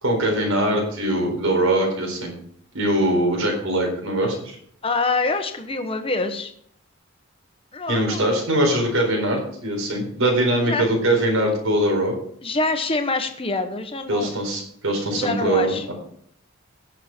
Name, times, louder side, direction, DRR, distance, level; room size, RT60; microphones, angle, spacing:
voice 1, 0.0-2.3 2.7-4.6 7.9-12.2 14.1-15.9, right 1 dB, 90° right, 0 dB, 4.3 m, -22 dB
voice 2, 4.8-6.5 7.7-8.3 10.7-10.9 12.4-14.4 15.1-15.8, left 3 dB, 25° left, 7 dB, 1.2 m, -25 dB
17.0 x 6.6 x 4.5 m, 0.63 s
head